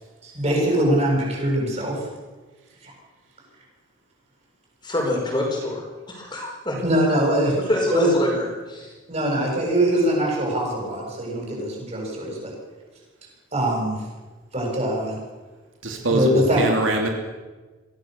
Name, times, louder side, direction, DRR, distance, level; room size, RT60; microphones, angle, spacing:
voice 1, 0.2-2.1 2.8-2.9 6.8-7.6 7.9-8.1 9.1-12.5 13.5-14.0 14.5-15.2 16.1-16.6, right 1 dB, 30° right, -2 dB, 7.8 m, -22 dB
voice 2, 4.8-6.8 7.5-8.9, left 1 dB, 20° left, -1 dB, 5.0 m, -26 dB
voice 3, 15.8-17.1, right 2 dB, 70° right, 2 dB, 2.8 m, -23 dB
24.0 x 16.5 x 6.7 m, 1.3 s
head